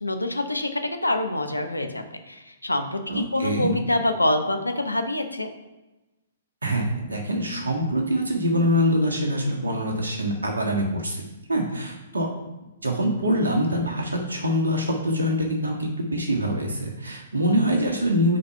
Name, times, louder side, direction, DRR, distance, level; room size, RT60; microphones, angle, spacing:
voice 1, 0.0-5.5, left 1 dB, 90° left, 6 dB, 0.8 m, -26 dB
voice 2, 3.1-3.7 6.6-11.2 11.5-12.3 12.8-18.4, equal, 80° right, 0 dB, 1.5 m, -24 dB
5.1 x 4.2 x 5.6 m, 1.1 s
figure-of-eight pair, 120°, 0 cm